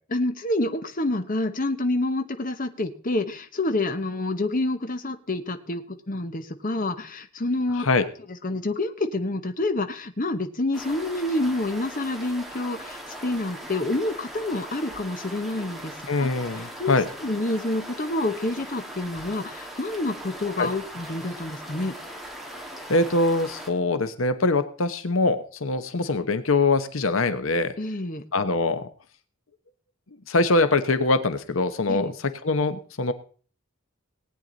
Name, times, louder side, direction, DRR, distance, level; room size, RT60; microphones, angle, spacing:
voice 1, 0.1-7.9 8.4-16.3 16.6-17.0 17.2-21.9 27.8-28.2 31.9-32.1, left 2 dB, 40° left, 7 dB, 1.1 m, -28 dB
sound 1, 10.7-23.7, equal, ahead, 2.1 m, -40 dB
voice 2, 16.1-17.1 20.6-20.7 22.9-27.7 28.3-28.9 30.3-33.1, left 3 dB, 70° left, 11 dB, 0.9 m, -23 dB
19.0 x 9.1 x 4.0 m, 0.40 s
head